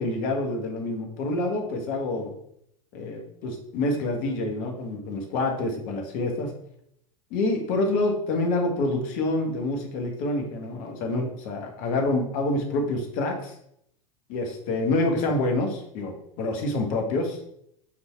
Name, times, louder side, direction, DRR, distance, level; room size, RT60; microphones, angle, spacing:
voice 1, 0.0-2.3 2.9-6.5 7.3-13.5 14.3-17.4, left 2 dB, 50° left, 2 dB, 1.6 m, -27 dB
6.5 x 4.0 x 4.6 m, 0.71 s
figure-of-eight pair, 85°, 18 cm